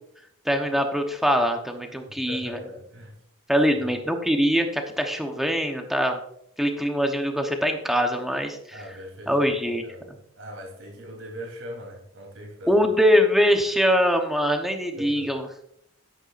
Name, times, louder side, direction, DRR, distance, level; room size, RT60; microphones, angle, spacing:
voice 1, 0.4-2.6 3.5-6.2 6.6-8.8 9.3-9.8 12.7-15.5, equal, ahead, 4 dB, 1.0 m, -23 dB
voice 2, 2.1-3.1 3.7-3.9 8.7-12.9 15.0-15.3, equal, 70° right, 0 dB, 3.5 m, -41 dB
11.5 x 9.8 x 2.6 m, 0.73 s
head